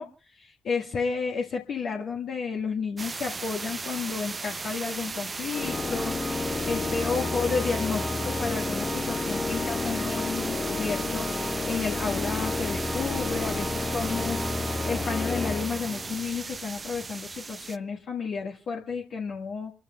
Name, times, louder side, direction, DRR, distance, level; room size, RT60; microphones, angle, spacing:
voice 1, 0.0-19.7, left 5 dB, 60° left, -1 dB, 1.8 m, -32 dB
sound 1, 3.0-17.8, right 4 dB, 35° right, 0.7 m, -36 dB
Organ, 5.5-16.4, left 3 dB, 35° left, 1.1 m, -31 dB
28.5 x 13.0 x 2.4 m, 0.34 s
figure-of-eight pair, 40°, 0 cm